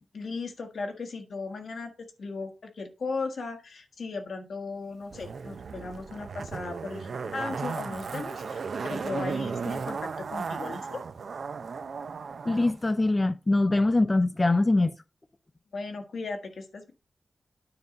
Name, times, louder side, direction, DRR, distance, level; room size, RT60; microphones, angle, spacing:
voice 1, 0.1-11.0 15.7-16.9, left 4 dB, 90° left, 1.5 m, -37 dB
Zipper (clothing), 5.1-12.7 13.0-13.1, right 5 dB, 80° right, 0.5 m, -35 dB
voice 2, 12.5-14.9, left 2 dB, 30° left, 0.4 m, -23 dB
9.6 x 3.9 x 5.2 m
wide cardioid pair, 100°, 0 cm